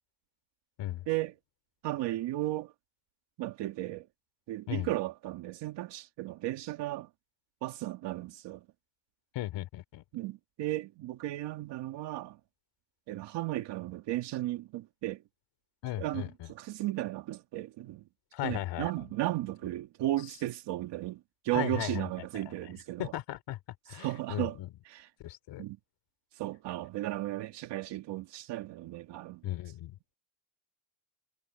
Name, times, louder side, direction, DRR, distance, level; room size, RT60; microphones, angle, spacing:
voice 1, 1.8-2.7 3.4-4.1 4.5-7.1 7.6-8.6 10.1-12.4 13.1-15.2 16.0-18.0 18.4-23.1 23.9-24.6 24.9-25.1 25.6-25.8 26.4-29.4, right 15 dB, 65° right, 2.0 m, -35 dB
voice 2, 9.3-10.0 15.8-16.5 18.3-18.9 21.5-22.1 22.3-22.7 23.0-23.6 23.9-24.7 25.2-25.6 29.4-30.0, left 14 dB, 65° left, 3.8 m, -36 dB
cardioid pair, 145°, 46 cm